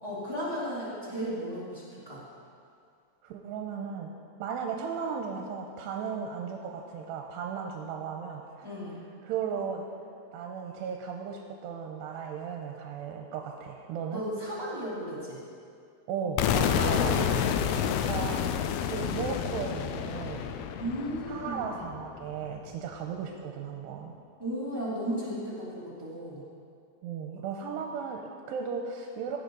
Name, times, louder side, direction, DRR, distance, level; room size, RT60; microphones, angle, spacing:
voice 1, 0.0-2.2 8.6-8.9 14.1-15.4 16.7-17.3 20.8-21.6 24.4-26.4, equal, 5° right, -9 dB, 2.0 m, -35 dB
voice 2, 3.2-4.1 4.4-8.7 9.2-9.8 10.3-14.2 16.1-17.8 18.1-20.5 21.3-24.1 27.0-29.4, right 6 dB, 85° right, 2 dB, 2.8 m, -36 dB
sound 1, 16.4-22.3, left 8 dB, 80° left, 2.4 m, -29 dB
16.5 x 10.5 x 3.9 m, 2.3 s
omnidirectional pair, 4.9 m